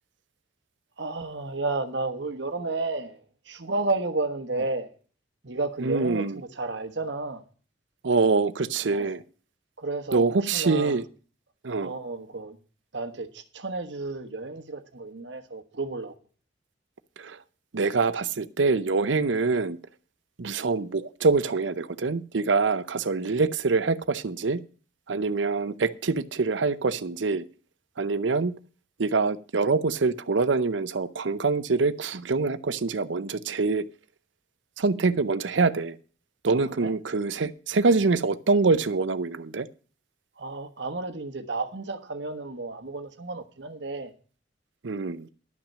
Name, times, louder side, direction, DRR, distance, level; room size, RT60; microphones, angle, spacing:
voice 1, 1.0-4.9 5.4-7.4 8.9-9.1 9.8-11.0 11.8-12.6 12.9-16.1 36.8-36.9 40.4-44.1, right 3 dB, 70° right, 1.3 m, -32 dB
voice 2, 5.8-6.4 8.0-9.2 10.1-11.0 11.6-11.9 17.2-17.4 17.7-19.8 20.4-24.6 25.1-27.4 28.0-28.5 29.0-33.9 34.8-36.0 36.4-39.7 44.8-45.3, right 4 dB, 90° right, 0.7 m, -25 dB
11.5 x 6.0 x 7.3 m
head